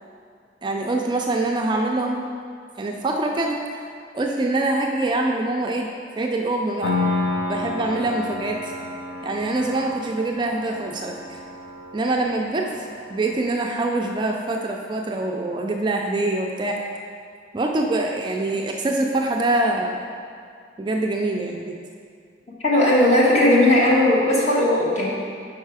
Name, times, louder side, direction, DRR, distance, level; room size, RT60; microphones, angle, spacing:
voice 1, 0.6-2.3 2.8-3.9 4.1-5.9 6.2-7.0 7.5-8.7 9.2-11.4 11.9-16.8 17.5-20.0 20.8-21.8, right 2 dB, 25° right, 1 dB, 0.3 m, -24 dB
Piano, 6.8-13.6, left 2 dB, 65° left, 0.5 m, -30 dB
voice 2, 22.6-25.1, left 1 dB, 40° left, -5 dB, 1.2 m, -17 dB
5.5 x 4.7 x 4.7 m, 2.3 s
head